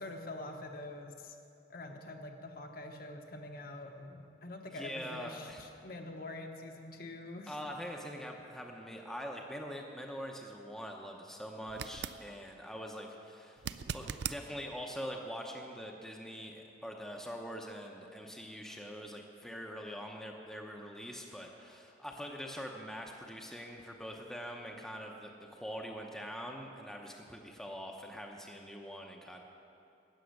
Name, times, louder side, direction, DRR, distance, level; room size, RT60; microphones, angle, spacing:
voice 1, 0.0-1.4 1.7-7.6, left 2 dB, 50° left, 3 dB, 1.0 m, -45 dB
voice 2, 4.7-5.6 7.5-29.4, equal, ahead, 0 dB, 0.7 m, -44 dB
sound 1, 11.7-12.2 13.6-14.4 17.4-17.5, right 8 dB, 60° right, 0.4 m, -39 dB
13.0 x 9.0 x 6.5 m, 2.7 s
head